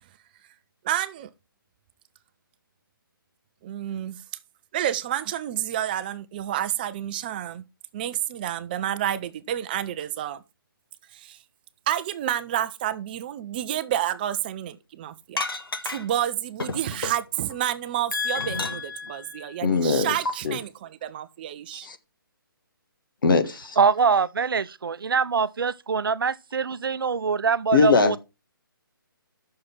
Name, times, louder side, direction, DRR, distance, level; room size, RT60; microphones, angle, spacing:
voice 1, 0.8-1.3 3.6-4.2 4.7-7.6 7.9-10.4 11.1-11.4 11.9-15.4 15.8-21.9, right 11 dB, 25° right, 0.5 m, -29 dB
sound 1, 15.4-16.2 16.6-17.6 18.0-19.1 20.2-20.3, left 3 dB, 80° left, 1.7 m, -32 dB
voice 2, 18.1-20.1 20.4-20.6 21.8-22.0 23.2-23.8 27.7-28.2, left 4 dB, 65° left, 1.5 m, -23 dB
voice 3, 23.8-28.2, right 5 dB, 75° right, 0.6 m, -23 dB
7.8 x 6.5 x 5.7 m
hypercardioid pair, 150°, 12 cm